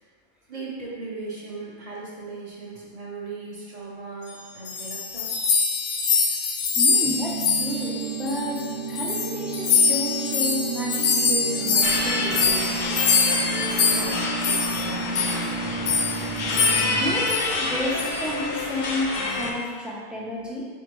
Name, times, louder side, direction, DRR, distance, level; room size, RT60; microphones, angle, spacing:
voice 1, 0.5-5.2 13.9-15.5, right 3 dB, 40° right, -5 dB, 0.7 m, -37 dB
sound 1, 4.4-8.7 8.9-14.8 15.2-15.4 15.9-16.2 16.5-17.0 17.3-17.5 18.0-18.3, left 5 dB, 75° left, 0.9 m, -24 dB
voice 2, 6.7-12.7 16.9-20.7, left 1 dB, ahead, -5 dB, 0.3 m, -32 dB
sound 2, 7.0-17.1, right 4 dB, 70° right, 1.1 m, -32 dB
sound 3, 11.8-19.5, left 2 dB, 55° left, 0.5 m, -28 dB
4.2 x 3.6 x 3.0 m, 1.5 s
omnidirectional pair, 1.2 m